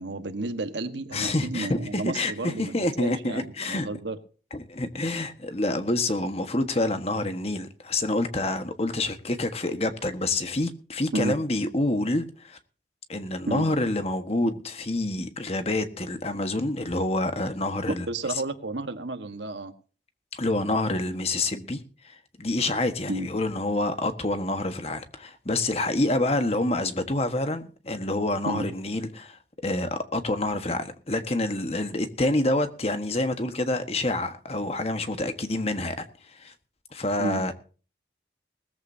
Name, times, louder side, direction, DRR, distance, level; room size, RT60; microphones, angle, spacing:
voice 1, 0.0-4.2 11.1-11.3 13.5-13.7 17.9-19.7 23.1-23.3 28.5-28.7 37.2-37.4, right 2 dB, 85° right, 1.5 m, -31 dB
voice 2, 1.1-3.9 4.5-12.6 13.1-18.0 20.3-36.0 36.3-36.5 36.9-37.5, left 2 dB, 35° left, 1.5 m, -27 dB
19.5 x 14.5 x 2.8 m
head